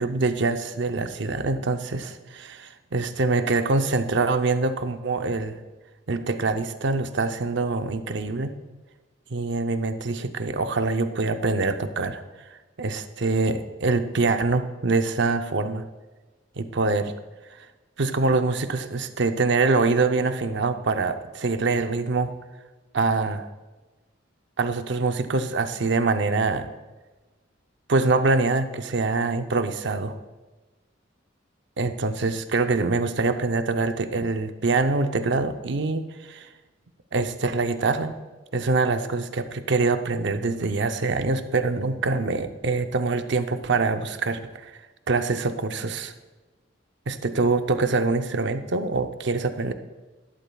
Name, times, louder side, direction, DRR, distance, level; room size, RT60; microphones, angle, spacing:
voice 1, 0.0-5.6 6.1-8.5 9.3-12.2 12.5-15.8 16.6-17.1 18.0-22.3 22.9-23.5 24.6-26.7 27.9-30.2 31.8-36.5 37.1-38.1 38.5-44.7 45.1-46.1 47.1-49.7, right 3 dB, 65° right, 8 dB, 0.6 m, -24 dB
12.5 x 11.5 x 2.3 m, 1.2 s
head